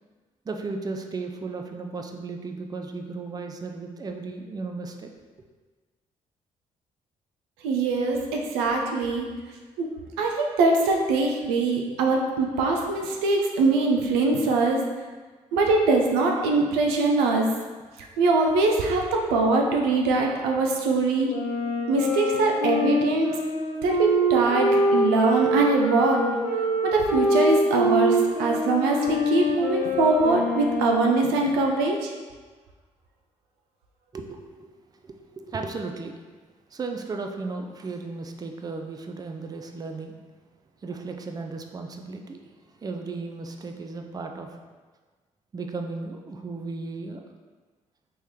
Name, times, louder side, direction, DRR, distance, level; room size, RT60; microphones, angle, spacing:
voice 1, 0.5-5.1 34.1-34.7 35.0-36.2 36.7-40.2 40.8-42.4 42.8-44.6 45.5-47.2, right 3 dB, 25° right, 4 dB, 0.4 m, -35 dB
voice 2, 7.6-9.3 9.8-9.9 10.2-14.8 15.5-17.5 18.0-21.3 21.9-23.4 23.8-26.3 26.8-32.1, right 3 dB, 75° right, 1 dB, 0.5 m, -22 dB
Wind instrument woodwind instrument, 21.3-31.3, equal, 75° left, 0.7 m, -25 dB
3.0 x 3.0 x 3.6 m, 1.4 s
hypercardioid pair, 45°, 17 cm